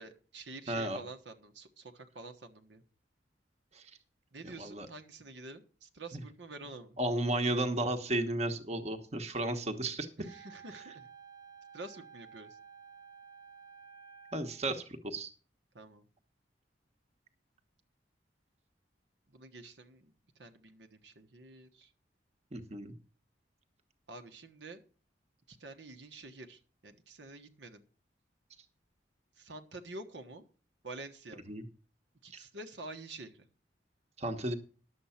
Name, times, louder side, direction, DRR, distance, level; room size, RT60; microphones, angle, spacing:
voice 1, 0.0-2.8 4.3-7.0 10.2-11.1 11.7-12.6 15.7-16.0 19.3-20.1 20.4-21.9 24.1-24.8 25.5-27.8 29.4-30.4 30.8-31.5 32.2-33.5, right 2 dB, 85° right, 6 dB, 1.3 m, -48 dB
voice 2, 0.7-1.0 3.7-3.8 4.6-4.9 6.1-6.2 7.0-10.1 14.3-15.3 22.5-22.9 31.5-31.6 32.3-32.4 34.2-34.5, right 1 dB, 35° right, 7 dB, 1.2 m, -33 dB
Wind instrument woodwind instrument, 10.2-14.7, right 6 dB, 20° right, 0.9 m, -53 dB
11.0 x 7.8 x 5.8 m, 0.38 s
head